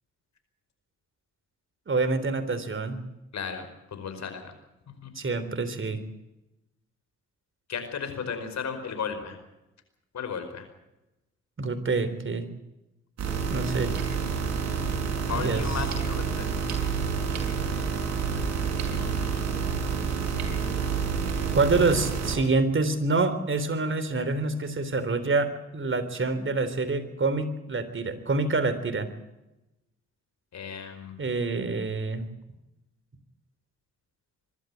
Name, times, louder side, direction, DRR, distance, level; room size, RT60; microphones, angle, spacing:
voice 1, 1.9-3.0 5.2-6.0 11.6-12.5 13.5-13.9 15.3-15.8 21.5-29.1 31.2-32.3, right 3 dB, 40° right, 10 dB, 3.7 m, -26 dB
voice 2, 3.3-4.5 5.0-5.1 7.7-9.4 10.1-10.7 15.3-16.8 18.9-19.5 30.5-31.1, left 6 dB, 65° left, 8 dB, 5.0 m, -35 dB
sound 1, 13.2-22.4, right 6 dB, 65° right, 6.0 m, -28 dB
23.5 x 12.5 x 9.4 m, 0.95 s
supercardioid pair, 55°, 30 cm